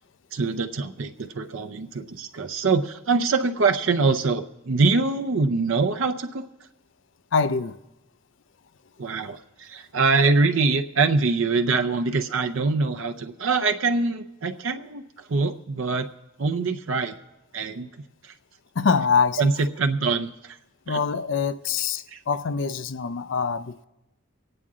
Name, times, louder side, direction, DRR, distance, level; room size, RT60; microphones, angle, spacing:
voice 1, 0.3-6.5 9.0-16.1 16.4-17.1 17.5-17.9 18.2-18.3 19.4-20.6 20.9-21.0 22.1-22.2, right 4 dB, 70° right, 0.6 m, -24 dB
voice 2, 7.3-7.8 18.8-19.4 20.9-23.8, left 5 dB, 60° left, 0.4 m, -24 dB
25.0 x 8.8 x 3.7 m
head